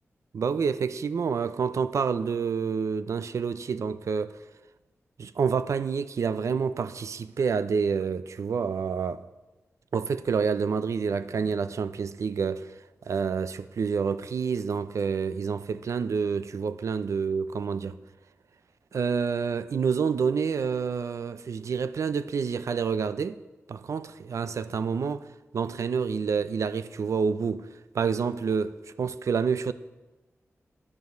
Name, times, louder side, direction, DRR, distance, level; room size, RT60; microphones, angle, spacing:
voice 1, 0.3-4.4 5.2-9.2 9.9-12.7 13.1-18.0 18.9-23.4 23.7-25.2 25.5-27.7 27.9-29.7, right 6 dB, 80° right, 0.5 m, -28 dB
9.8 x 9.5 x 5.1 m
wide cardioid pair, 115°, 5 cm